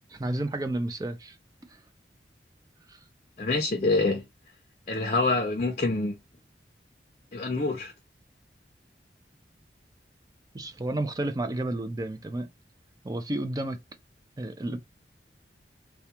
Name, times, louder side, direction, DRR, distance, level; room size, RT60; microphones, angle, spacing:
voice 1, 0.1-1.4 2.9-3.0 10.5-12.5 13.0-13.8 14.4-14.8, right 1 dB, 20° right, 0.4 m, -31 dB
voice 2, 3.4-4.2 4.9-6.2 7.3-7.9, left 3 dB, 40° left, 0.5 m, -26 dB
2.3 x 2.2 x 2.8 m
head